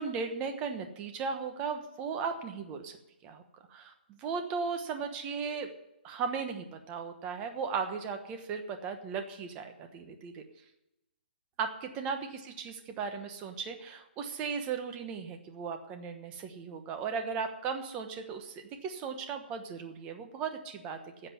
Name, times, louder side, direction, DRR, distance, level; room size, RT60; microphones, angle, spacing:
voice 1, 0.0-3.0 3.2-3.4 3.7-5.7 6.0-10.4 11.6-21.3, right 5 dB, 20° right, 6 dB, 1.1 m, -36 dB
9.9 x 7.8 x 9.5 m, 0.90 s
hypercardioid pair, 165°, 6 cm